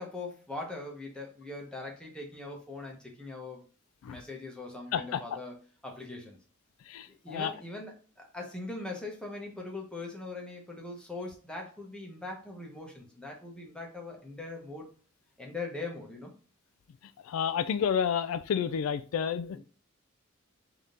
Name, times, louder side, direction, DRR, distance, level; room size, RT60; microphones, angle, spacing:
voice 1, 0.0-3.6 4.1-5.6 5.8-6.4 7.1-14.9 15.4-16.3, left 2 dB, 5° left, 0.9 m, -41 dB
voice 2, 4.9-5.2 6.9-7.5 17.2-19.6, left 7 dB, 75° left, 0.3 m, -30 dB
3.5 x 2.8 x 3.7 m
head